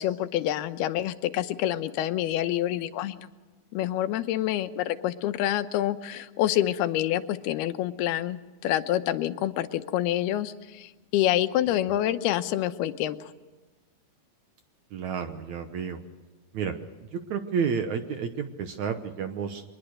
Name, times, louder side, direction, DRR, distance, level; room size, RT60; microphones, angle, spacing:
voice 1, 0.0-3.3 3.7-13.3, left 13 dB, 90° left, 10 dB, 2.9 m, -27 dB
voice 2, 14.9-16.0 16.5-16.7 17.1-19.6, right 6 dB, 65° right, 7 dB, 1.9 m, -30 dB
24.0 x 20.5 x 6.5 m, 1.3 s
omnidirectional pair, 4.5 m